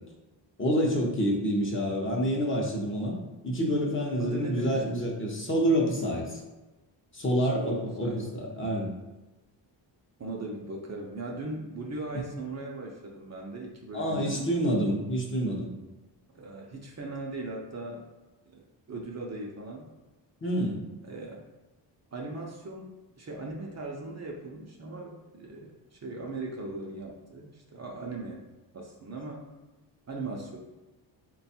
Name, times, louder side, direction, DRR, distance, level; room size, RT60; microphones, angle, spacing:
voice 1, 0.6-3.1 3.4-6.4 7.1-8.9 13.9-15.7 20.4-20.8, equal, 30° left, -2 dB, 0.7 m, -27 dB
voice 2, 4.2-5.0 7.4-8.3 10.2-14.5 16.3-18.0 18.5-19.9 21.0-21.4 22.1-28.4 28.7-29.5 30.1-30.6, right 2 dB, 35° right, -1 dB, 0.6 m, -39 dB
3.4 x 2.3 x 4.2 m, 1.1 s
wide cardioid pair, 125°, 45 cm